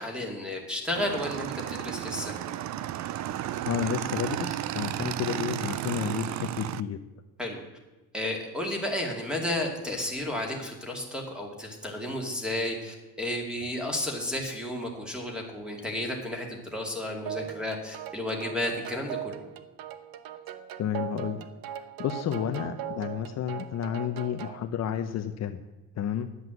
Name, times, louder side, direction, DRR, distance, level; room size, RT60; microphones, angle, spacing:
voice 1, 0.0-2.4 7.4-7.6 8.1-19.4, left 1 dB, ahead, 1 dB, 2.3 m, -32 dB
Motorcycle / Engine, 1.0-6.8, right 12 dB, 50° right, 0.5 m, -33 dB
voice 2, 3.6-7.0 20.8-21.4 21.7-25.6 26.0-26.3, left 9 dB, 50° left, 7 dB, 0.7 m, -31 dB
sound 1, 17.3-24.6, right 10 dB, 75° right, 1.0 m, -39 dB
11.0 x 8.1 x 7.8 m, 1.1 s
cardioid pair, 160°, 35 cm